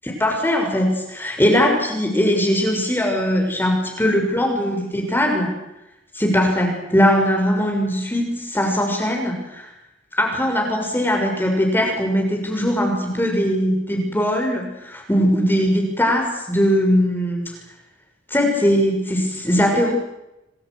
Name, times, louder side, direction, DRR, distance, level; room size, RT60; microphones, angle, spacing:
voice 1, 0.2-5.5 6.1-9.7 10.2-17.4 18.3-19.9, equal, 10° left, 1 dB, 6.5 m, -20 dB
28.0 x 25.0 x 6.4 m, 0.92 s
head